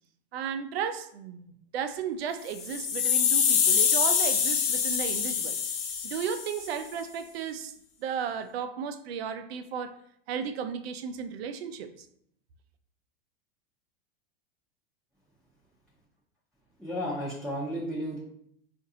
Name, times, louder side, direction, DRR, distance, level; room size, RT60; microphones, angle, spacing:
voice 1, 0.3-5.6 6.0-7.7 8.0-10.0 10.3-12.1, right 7 dB, 80° right, 9 dB, 0.5 m, -34 dB
sound 1, 2.5-6.7, left 7 dB, 45° left, 0.7 m, -25 dB
voice 2, 16.8-18.2, equal, ahead, -8 dB, 0.6 m, -33 dB
3.8 x 2.5 x 2.7 m, 0.69 s
hypercardioid pair, 120°, 30 cm